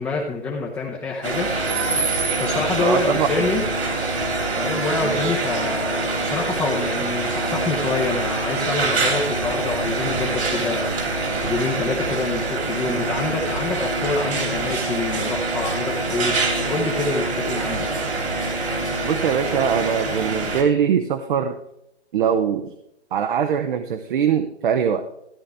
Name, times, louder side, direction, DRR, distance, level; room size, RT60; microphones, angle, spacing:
voice 1, 0.0-1.5 2.4-3.6 4.6-17.9, left 3 dB, 5° left, -2 dB, 0.7 m, -27 dB
sound 1, 1.2-20.6, right 3 dB, 65° right, 3.0 m, -25 dB
voice 2, 2.8-3.3 5.0-5.2 19.0-21.6 22.1-22.7 23.1-25.0, right 8 dB, 45° right, 8 dB, 0.8 m, -22 dB
13.5 x 9.7 x 3.5 m, 0.80 s
hypercardioid pair, 140°, 34 cm